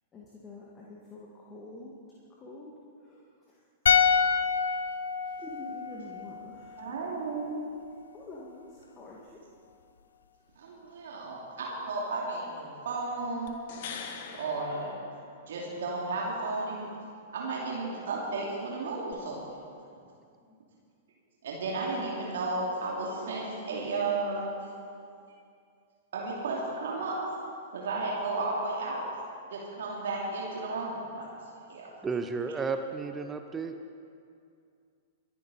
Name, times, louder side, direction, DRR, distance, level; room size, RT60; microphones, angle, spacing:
voice 1, 0.1-1.9 2.4-2.7 3.0-3.3 5.4-7.5 8.1-9.4, left 2 dB, 20° left, -4 dB, 1.9 m, -47 dB
sound 1, 3.9-7.1 7.3-7.5, left 6 dB, 65° left, 0.6 m, -27 dB
voice 2, 6.8-7.6 10.6-13.5 14.4-14.9 15.5-16.9 17.3-19.6 21.4-24.5 26.1-27.2 27.7-29.1 29.5-31.3 31.7-31.9, right 3 dB, 60° right, -3 dB, 2.7 m, -33 dB
sound 2, 13.5-15.7 19.1-19.2, left 6 dB, 50° left, 1.3 m, -43 dB
voice 3, 32.0-33.7, right 4 dB, 15° right, 7 dB, 0.8 m, -32 dB
24.0 x 10.5 x 4.1 m, 2.4 s
figure-of-eight pair, 100°, 0 cm